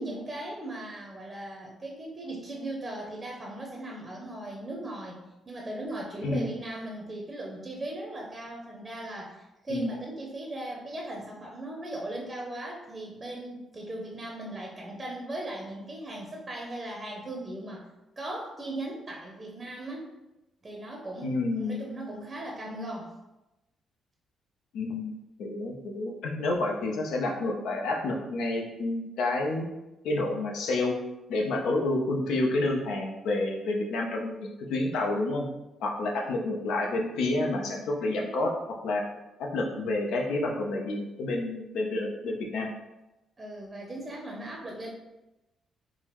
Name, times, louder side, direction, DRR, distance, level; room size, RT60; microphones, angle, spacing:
voice 1, 0.0-17.8 18.2-20.1 20.6-23.1 43.4-44.9, right 1 dB, 25° right, -1 dB, 0.6 m, -38 dB
voice 2, 21.2-21.8 24.7-25.1 25.4-29.7 30.0-31.0 31.3-35.5 35.8-38.5 38.8-39.0 39.4-42.7, left 2 dB, 80° left, 1 dB, 0.5 m, -29 dB
3.7 x 2.0 x 2.9 m, 0.97 s
cardioid pair, 90°, 0 cm